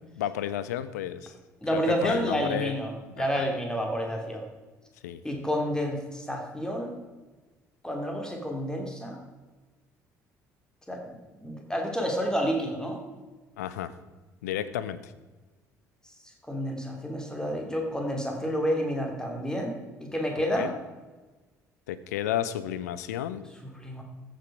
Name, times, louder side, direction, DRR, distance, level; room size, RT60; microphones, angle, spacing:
voice 1, 0.1-1.3 1.7-2.8 3.2-3.5 5.0-5.2 13.6-13.9 14.4-15.1 20.6-20.7 21.9-23.5, left 11 dB, 70° left, 14 dB, 0.6 m, -32 dB
voice 2, 1.6-2.9 3.2-4.5 5.2-6.9 7.8-9.2 10.9-11.0 11.4-13.0 16.5-19.7 20.0-20.7 23.6-24.0, equal, 10° left, 2 dB, 2.8 m, -29 dB
14.0 x 7.6 x 4.8 m, 1.2 s
figure-of-eight pair, 55°, 9 cm